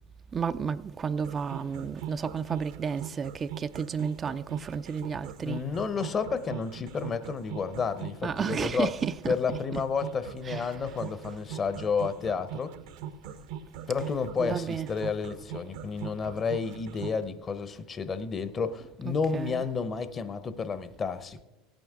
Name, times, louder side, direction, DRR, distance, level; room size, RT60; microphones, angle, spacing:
voice 1, 0.3-5.6 8.2-9.4 9.7-9.8 10.4-10.8 14.4-14.9 19.0-19.6, right 6 dB, 30° right, 0.3 m, -32 dB
sound 1, 1.2-17.2, right 9 dB, 70° right, 0.7 m, -41 dB
voice 2, 5.4-8.9 9.3-12.7 13.9-21.4, left 5 dB, 35° left, 0.8 m, -31 dB
16.0 x 9.1 x 3.6 m
hypercardioid pair, 80°, 0 cm